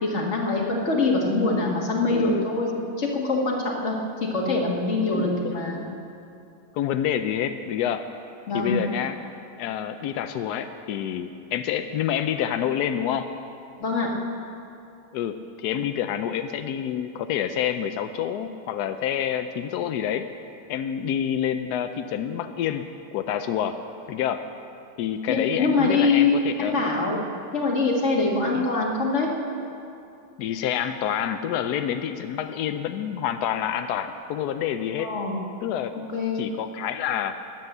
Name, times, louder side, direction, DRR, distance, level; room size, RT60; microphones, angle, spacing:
voice 1, 0.0-5.8 8.5-8.8 13.8-14.1 25.3-27.2 27.5-29.3 35.0-35.4 36.1-36.4, left 3 dB, 35° left, -1 dB, 2.1 m, -24 dB
voice 2, 2.1-2.5 5.1-5.6 6.7-8.1 8.5-9.2 9.6-13.3 15.1-20.2 20.7-22.8 23.1-23.8 24.1-24.4 25.0-26.7 28.4-28.7 30.4-35.1 35.6-35.9 36.3-37.4, left 9 dB, 80° left, 8 dB, 0.9 m, -28 dB
13.0 x 11.0 x 8.0 m, 2.7 s
omnidirectional pair, 2.2 m